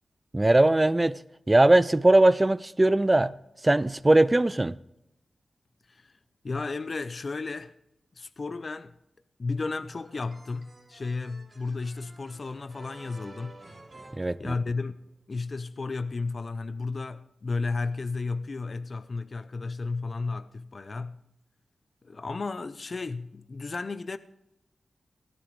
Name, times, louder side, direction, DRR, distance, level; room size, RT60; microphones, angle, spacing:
voice 1, 0.3-1.2 1.5-3.3 3.6-4.8 14.2-14.5, right 2 dB, 20° right, 0.4 m, -20 dB
voice 2, 6.4-7.7 8.2-9.0 9.4-13.6 14.4-21.2 22.0-24.2, left 3 dB, 50° left, 0.5 m, -33 dB
sound 1, 9.7-15.1, right 2 dB, 50° right, 3.4 m, -52 dB
17.0 x 11.5 x 3.2 m
cardioid pair, 70°, 0 cm